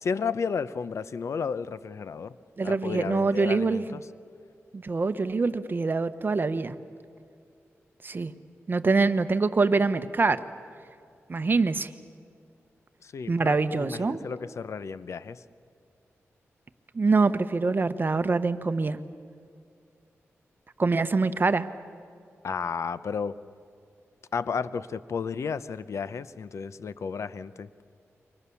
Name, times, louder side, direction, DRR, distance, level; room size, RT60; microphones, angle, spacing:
voice 1, 0.0-2.3 2.6-4.0 13.0-15.4 22.4-23.3 24.3-27.8, left 6 dB, 70° left, 15 dB, 0.7 m, -33 dB
voice 2, 2.6-4.0 4.7-6.8 8.0-8.3 8.7-10.4 11.3-11.9 13.3-14.2 16.9-19.0 20.8-21.7, right 3 dB, 40° right, 11 dB, 1.0 m, -24 dB
29.0 x 24.0 x 7.0 m, 2.3 s
cardioid pair, 70°, 5 cm